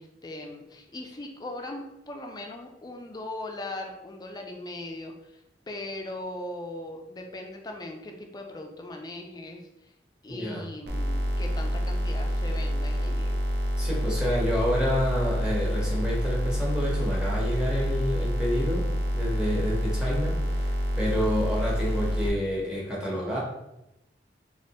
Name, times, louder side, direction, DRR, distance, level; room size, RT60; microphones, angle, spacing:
voice 1, 0.0-5.3 5.7-9.6 10.2-13.4 21.3-21.5, left 1 dB, 25° left, 2 dB, 0.4 m, -39 dB
voice 2, 10.3-10.6 13.8-18.8 19.1-23.4, equal, 5° right, -4 dB, 0.9 m, -29 dB
sound 1, 10.9-22.3, equal, 70° right, 0.6 m, -27 dB
3.3 x 3.0 x 2.8 m, 0.89 s
head